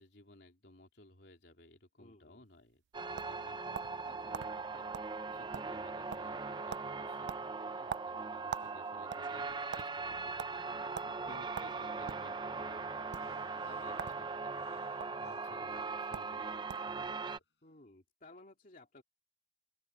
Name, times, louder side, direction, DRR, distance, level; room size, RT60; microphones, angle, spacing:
voice 1, 0.0-17.4, left 1 dB, 70° left, 3.9 m, -59 dB
voice 2, 2.0-2.5 9.2-9.4 17.6-19.0, left 2 dB, 50° left, 2.5 m, -58 dB
sound 1, 2.6-4.0 4.3-4.5 4.9-5.1 5.4-5.9 6.1-6.4 6.7-6.9 7.3-8.7 9.0-9.9 10.4-10.5 10.9-11.1 11.5-12.3 13.0-13.2 13.9-14.2 14.5-15.1 15.8-15.9 16.1-16.3 16.7-16.9, right 8 dB, 80° right, 0.3 m, -42 dB
sound 2, 2.9-17.4, right 4 dB, 25° right, 0.6 m, -40 dB
Man Pain Divers, 13.2-16.9 17.2-17.3, left 4 dB, 85° left, 5.0 m, -59 dB
open air
head